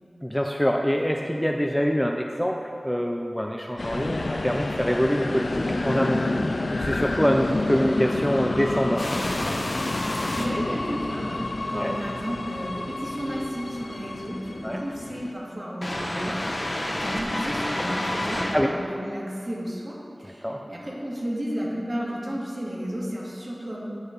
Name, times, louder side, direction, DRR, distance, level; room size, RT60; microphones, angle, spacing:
voice 1, 0.2-6.2 6.7-9.0 11.7-12.0 14.6-14.8 18.5-18.8 20.2-20.7, equal, 5° left, 2 dB, 0.4 m, -25 dB
sound 1, 3.8-15.3, left 2 dB, 70° left, 0.4 m, -29 dB
sound 2, 9.0-10.4 15.8-18.5, left 1 dB, 45° left, 1.0 m, -29 dB
voice 2, 10.4-23.9, equal, 40° right, -6 dB, 2.0 m, -33 dB
9.7 x 4.5 x 5.1 m, 2.5 s
wide cardioid pair, 65°, 0 cm